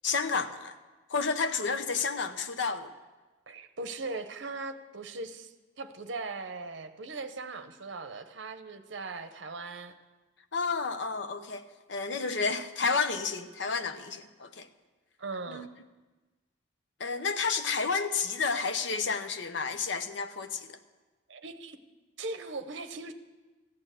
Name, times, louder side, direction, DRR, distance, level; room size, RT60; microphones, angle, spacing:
voice 1, 0.0-0.8 1.1-2.9 10.5-14.7 15.5-15.7 17.0-20.8, left 5 dB, 65° left, 9 dB, 0.7 m, -31 dB
voice 2, 3.5-9.9 15.2-15.7 21.3-21.8 22.2-23.1, right 3 dB, 65° right, 9 dB, 0.8 m, -39 dB
14.0 x 8.8 x 6.4 m, 1.2 s
head